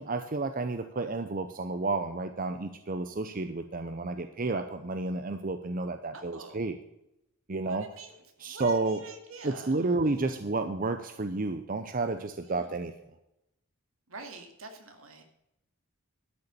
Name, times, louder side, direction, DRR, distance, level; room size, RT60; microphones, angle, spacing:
voice 1, 0.0-6.8 7.5-7.9 8.4-9.0 9.4-12.9, right 3 dB, 40° right, 8 dB, 0.7 m, -31 dB
voice 2, 6.1-6.6 7.6-8.1 8.5-10.4 12.4-12.5 14.1-15.2, right 3 dB, 75° right, 5 dB, 2.3 m, -46 dB
12.5 x 6.9 x 6.9 m, 0.84 s
head